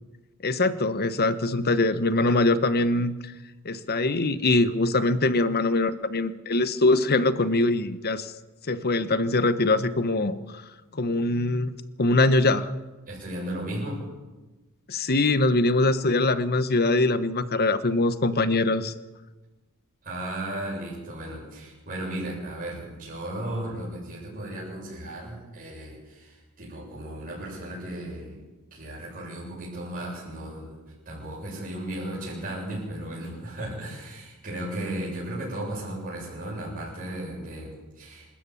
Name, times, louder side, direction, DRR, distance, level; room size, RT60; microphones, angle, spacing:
voice 1, 0.4-3.3 3.6-8.3 8.7-10.4 10.9-11.7 12.0-12.7 14.9-18.9, left 2 dB, 45° left, 12 dB, 1.1 m, -23 dB
voice 2, 13.1-14.0 20.0-28.4 28.7-30.8 31.1-38.3, right 1 dB, 40° right, -5 dB, 7.8 m, -35 dB
27.5 x 13.0 x 8.5 m, 1.2 s
head